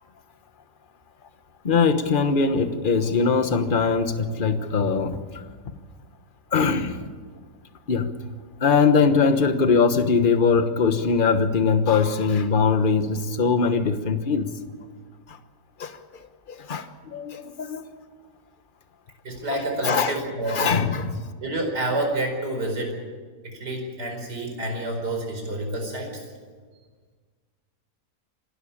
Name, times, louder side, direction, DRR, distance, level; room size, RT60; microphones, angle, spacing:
voice 1, 1.6-5.4 6.5-7.0 7.9-8.1 8.6-14.5 15.3-15.4 15.8-16.2 16.5-17.8 19.8-20.1 20.5-21.2, left 5 dB, 35° left, 9 dB, 1.2 m, -21 dB
voice 2, 19.2-20.8 21.4-23.0 23.4-26.2, right 1 dB, 65° right, 2 dB, 5.3 m, -28 dB
27.0 x 12.5 x 8.8 m, 1.5 s
omnidirectional pair, 1.9 m